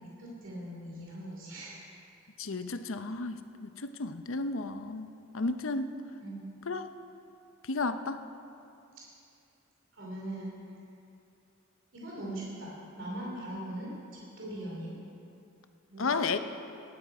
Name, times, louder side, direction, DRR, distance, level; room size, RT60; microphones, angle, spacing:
voice 1, 0.0-1.8 6.2-6.4 9.0-9.1 9.9-10.5 11.9-15.0 15.9-16.3, right 1 dB, 60° right, -4 dB, 2.8 m, -40 dB
voice 2, 2.4-5.9 6.7-6.9 7.6-8.2 16.0-16.4, left 3 dB, 70° left, 9 dB, 0.8 m, -33 dB
19.0 x 12.5 x 4.9 m, 2.6 s
head